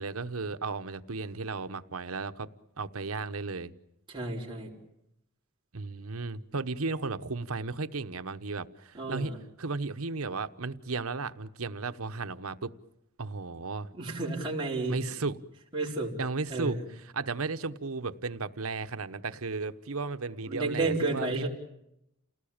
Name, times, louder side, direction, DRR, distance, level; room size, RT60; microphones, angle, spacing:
voice 1, 0.0-2.5 2.8-3.7 5.7-9.3 9.6-12.7 13.2-13.9 14.9-15.4 16.2-16.8 17.1-21.5, right 4 dB, 85° right, 1.1 m, -34 dB
voice 2, 4.1-4.7 8.9-9.4 13.9-15.0 15.7-16.1 16.5-16.8 20.5-21.5, right 2 dB, 20° right, 4.7 m, -31 dB
29.0 x 18.5 x 8.8 m
head